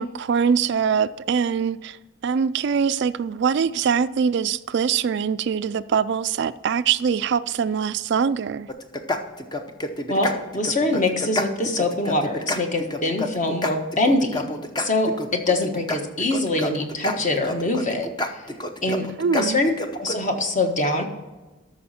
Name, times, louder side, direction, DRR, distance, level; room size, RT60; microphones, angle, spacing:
voice 1, 0.0-2.0 2.2-8.7 18.9-19.6, right 6 dB, 55° right, 0.3 m, -23 dB
sound 1, 8.7-20.2, left 2 dB, 20° left, 0.8 m, -29 dB
voice 2, 10.1-18.1 18.8-19.0 19.4-21.0, left 2 dB, 40° left, 1.3 m, -24 dB
13.0 x 6.4 x 4.3 m
head